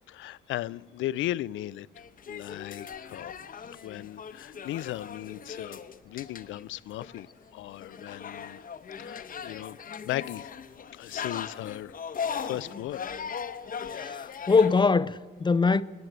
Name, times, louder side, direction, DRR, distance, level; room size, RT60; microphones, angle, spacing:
voice 1, 0.1-1.9 2.3-3.3 3.8-5.8 6.0-7.3 7.5-8.6 9.0-9.8 10.0-10.5 10.9-12.0 12.4-13.0, left 14 dB, 75° left, 0.4 m, -36 dB
sound 1, 2.0-14.8, left 7 dB, 45° left, 0.9 m, -39 dB
voice 2, 13.9-15.8, left 4 dB, 25° left, 0.5 m, -23 dB
19.0 x 9.4 x 8.0 m
cardioid pair, 90°, 20 cm